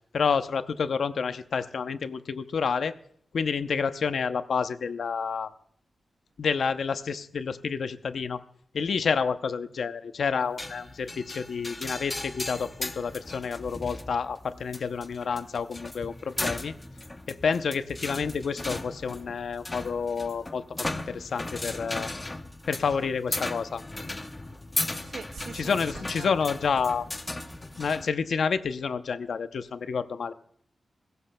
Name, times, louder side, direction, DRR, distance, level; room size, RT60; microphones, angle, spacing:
voice 1, 0.1-2.9 3.3-5.5 6.4-8.4 8.7-16.7 17.3-22.1 22.7-23.8 25.5-27.1 27.8-30.3, left 5 dB, 80° left, 0.6 m, -29 dB
sound 1, 10.6-28.1, left 2 dB, 20° left, 0.6 m, -37 dB
voice 2, 25.0-26.4, right 6 dB, 90° right, 0.4 m, -43 dB
20.5 x 16.5 x 2.2 m
wide cardioid pair, 150°, 0 cm